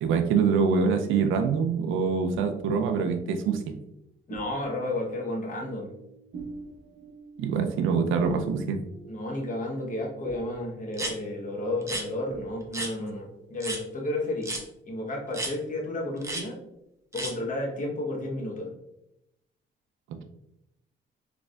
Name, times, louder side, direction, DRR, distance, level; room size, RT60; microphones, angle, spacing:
voice 1, 0.0-3.7 7.4-8.8 20.1-20.2, right 5 dB, 85° right, 6 dB, 0.5 m, -25 dB
sound 1, 2.3-4.0 4.3-13.8, right 2 dB, 65° right, 1.0 m, -46 dB
voice 2, 4.3-5.9 9.1-14.5 14.8-16.6 17.1-18.7, left 1 dB, 40° left, 0 dB, 1.1 m, -32 dB
sound 2, 10.9-11.1 11.8-12.0 12.7-12.9 13.6-13.8 14.4-14.6 15.3-15.5 16.2-16.4 17.1-17.3, right 1 dB, 15° right, 0.8 m, -32 dB
4.0 x 3.4 x 2.4 m, 0.84 s
cardioid pair, 90°, 20 cm